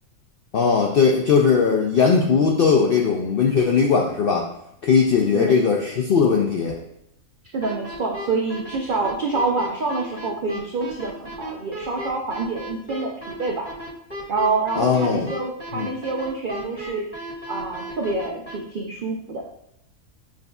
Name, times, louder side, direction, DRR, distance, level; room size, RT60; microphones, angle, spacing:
voice 1, 0.5-4.5 4.8-6.8 14.8-15.3 15.7-15.9, left 5 dB, 75° left, 0 dB, 0.5 m, -19 dB
voice 2, 7.5-13.7 14.3-19.4, right 3 dB, 90° right, 0 dB, 0.4 m, -27 dB
sound 1, 7.6-18.5, equal, 5° left, 1.3 m, -35 dB
7.1 x 2.6 x 2.3 m, 0.77 s
omnidirectional pair, 1.5 m